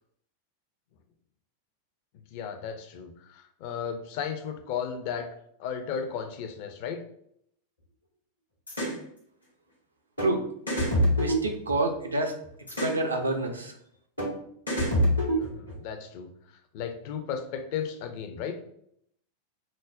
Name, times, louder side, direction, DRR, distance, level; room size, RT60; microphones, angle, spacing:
voice 1, 2.3-5.3 5.6-7.0 15.4-16.3 16.7-18.6, left 7 dB, 45° left, 7 dB, 0.4 m, -35 dB
sound 1, 8.7-9.0 10.2-10.3 10.7-12.1 12.7-13.0 14.2-14.3 14.7-15.8, equal, 85° left, 1.0 m, -26 dB
voice 2, 11.2-12.4 12.8-13.7, right 2 dB, 75° right, 4 dB, 0.5 m, -28 dB
4.9 x 2.0 x 2.5 m, 0.71 s
figure-of-eight pair, 90°, 0 cm